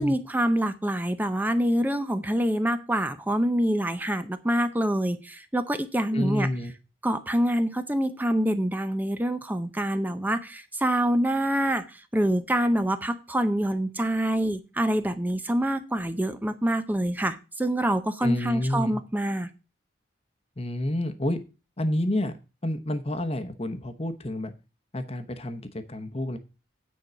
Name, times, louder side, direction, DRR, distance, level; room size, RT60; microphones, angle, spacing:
voice 1, 0.0-6.5 7.0-19.5, right 1 dB, 10° right, 10 dB, 0.6 m, -26 dB
voice 2, 6.1-6.7 18.2-19.0 20.6-21.4 21.8-22.3 22.6-24.5 24.9-26.4, left 1 dB, 30° left, 8 dB, 1.0 m, -29 dB
9.3 x 4.6 x 6.8 m, 0.31 s
head